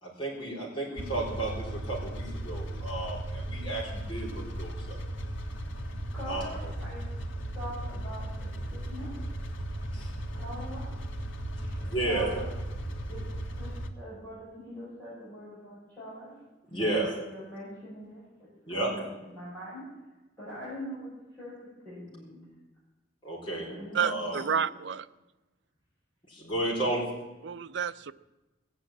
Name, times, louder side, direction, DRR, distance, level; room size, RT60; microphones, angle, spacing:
voice 1, 0.0-5.0 6.3-6.7 9.9-10.1 11.8-12.3 16.7-17.1 18.7-18.9 23.2-23.7 24.0-24.4 26.3-27.0, right 2 dB, 25° left, -5 dB, 4.1 m, -32 dB
sound 1, 1.0-13.9, right 1 dB, 85° left, 1.6 m, -36 dB
voice 2, 6.1-7.1 7.5-9.1 10.3-10.9 11.6-12.5 13.1-13.2 13.6-16.3 16.7-18.3 18.7-19.8 20.4-21.6 21.8-22.4 23.7-24.4, equal, 10° left, -12 dB, 7.4 m, -43 dB
voice 3, 23.9-25.1 27.4-28.1, right 7 dB, 65° right, 14 dB, 0.5 m, -30 dB
18.5 x 8.1 x 8.8 m, 1.1 s
head